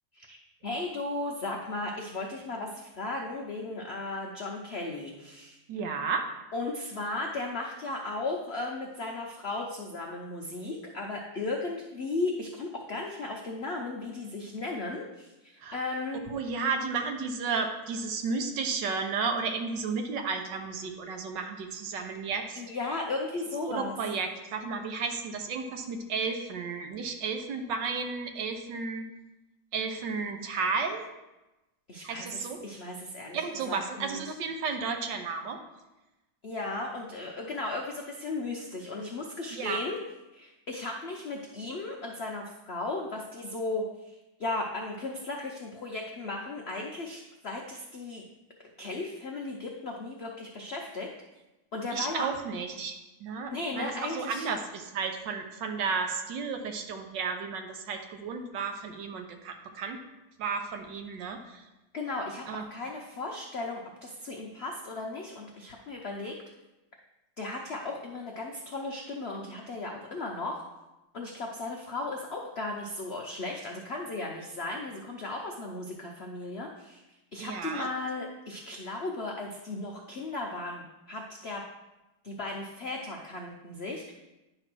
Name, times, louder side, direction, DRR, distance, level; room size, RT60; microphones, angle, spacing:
voice 1, 0.6-5.6 6.5-16.2 22.5-24.0 31.9-34.3 36.4-40.0 40.3-48.2 48.8-51.1 51.7-52.3 53.5-54.5 61.9-66.4 67.4-70.6 71.1-77.0 77.3-81.6 82.2-84.1, left 2 dB, 65° left, 0 dB, 0.6 m, -36 dB
voice 2, 5.7-6.3 15.6-15.8 16.3-22.6 23.7-29.1 29.7-31.0 32.0-32.6 33.3-35.6 39.5-39.8 51.9-60.0 60.4-61.6 62.5-62.6 77.4-77.9, right 5 dB, 70° right, 5 dB, 1.4 m, -33 dB
9.8 x 3.3 x 6.0 m, 1.0 s
omnidirectional pair, 2.1 m